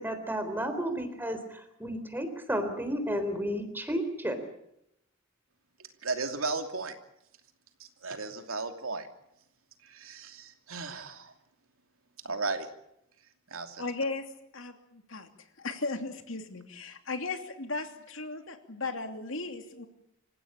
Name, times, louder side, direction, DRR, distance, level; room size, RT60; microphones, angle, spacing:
voice 1, 0.0-4.4, equal, 10° right, 9 dB, 3.7 m, -32 dB
voice 2, 6.0-7.0 7.8-9.1 9.8-11.3 12.2-12.7 13.5-13.8, right 3 dB, 80° right, 6 dB, 2.8 m, -35 dB
voice 3, 13.8-14.3 14.5-15.3 15.6-19.9, left 3 dB, 65° left, 6 dB, 2.9 m, -36 dB
27.0 x 16.0 x 8.8 m, 0.80 s
head